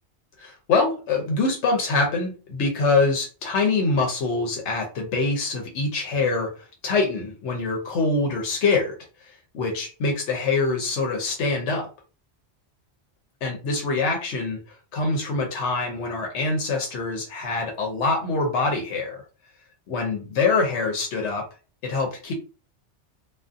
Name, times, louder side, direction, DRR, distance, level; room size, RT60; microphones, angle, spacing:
voice 1, 0.4-6.5 6.8-8.9 9.2-11.9 13.4-14.6 14.9-19.2 19.9-21.5 21.8-22.3, left 3 dB, 85° left, 2 dB, 0.9 m, -24 dB
2.5 x 2.3 x 2.4 m, 0.34 s
omnidirectional pair, 1.2 m